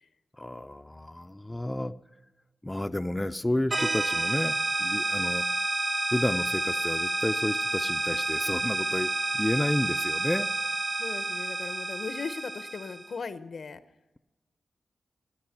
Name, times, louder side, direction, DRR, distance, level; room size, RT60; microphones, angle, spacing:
voice 1, 0.4-1.9 2.6-5.4 6.1-10.5, left 1 dB, 15° left, 8 dB, 0.5 m, -31 dB
sound 1, 3.7-13.1, right 2 dB, 40° right, 0.9 m, -29 dB
voice 2, 11.0-13.8, left 4 dB, 70° left, 12 dB, 0.8 m, -38 dB
17.5 x 9.7 x 5.9 m, 1.0 s
cardioid pair, 60°, 0 cm